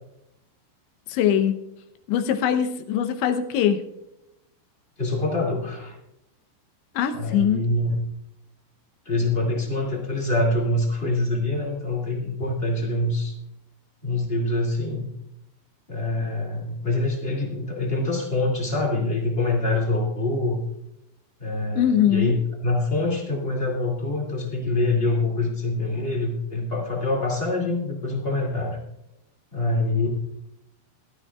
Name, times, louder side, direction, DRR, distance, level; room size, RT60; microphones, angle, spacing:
voice 1, 1.1-1.6 2.1-3.8 6.9-7.6 21.8-22.4, left 9 dB, 80° left, 7 dB, 3.2 m, -22 dB
voice 2, 5.0-5.9 7.1-7.9 9.0-13.3 14.0-15.1 15.9-20.6 21.4-28.8 29.5-30.1, left 2 dB, 25° left, -1 dB, 1.4 m, -25 dB
18.0 x 13.0 x 2.4 m, 0.86 s
omnidirectional pair, 5.3 m